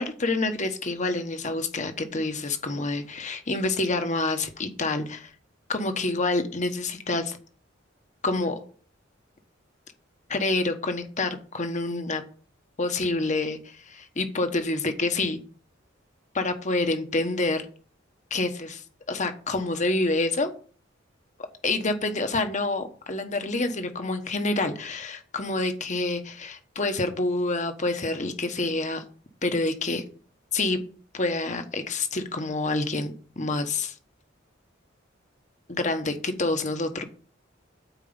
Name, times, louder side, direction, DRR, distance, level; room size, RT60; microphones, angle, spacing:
voice 1, 0.0-5.3 5.7-7.4 8.2-8.6 10.3-12.2 12.8-15.4 16.3-17.7 18.3-20.5 21.6-29.0 29.4-30.0 30.5-30.8 31.1-33.9 35.7-37.0, left 2 dB, 40° left, 7 dB, 1.2 m, -27 dB
9.1 x 4.6 x 7.1 m, 0.42 s
head